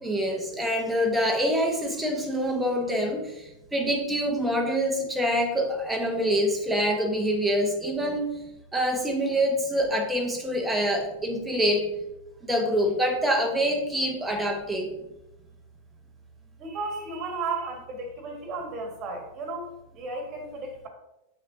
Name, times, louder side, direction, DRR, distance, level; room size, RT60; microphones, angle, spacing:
voice 1, 0.0-8.3 8.7-11.9 12.5-14.9, equal, 5° right, 0 dB, 1.0 m, -26 dB
voice 2, 16.6-20.9, right 3 dB, 35° right, 3 dB, 1.4 m, -34 dB
6.6 x 6.0 x 2.6 m, 0.92 s
figure-of-eight pair, 90°, 0 cm